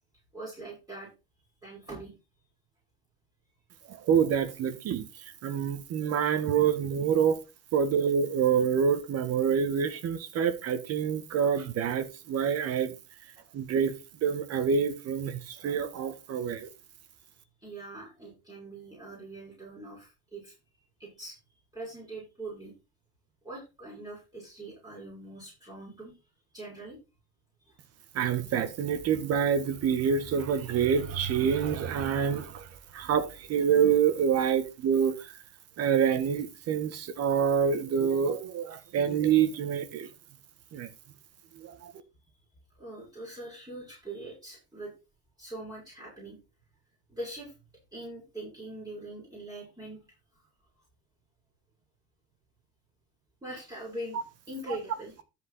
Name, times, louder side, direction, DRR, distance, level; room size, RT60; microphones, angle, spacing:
voice 1, 0.3-1.1 1.6-2.1 17.2-17.3 17.6-21.4 21.7-22.7 23.4-26.1 26.5-27.0 27.6-27.8 37.1-37.3 38.8-38.9 42.8-44.9 45.4-46.4 47.1-47.5 47.9-50.0 50.3-50.5 53.4-54.2 54.5-55.1, right 1 dB, 10° right, 5.8 m, -42 dB
voice 2, 3.9-7.4 7.7-12.9 13.5-13.9 14.2-16.7 28.1-35.4 35.8-40.1 40.7-40.9 41.5-41.9, right 7 dB, 50° right, 1.8 m, -27 dB
13.5 x 5.3 x 4.1 m
supercardioid pair, 110°, 31 cm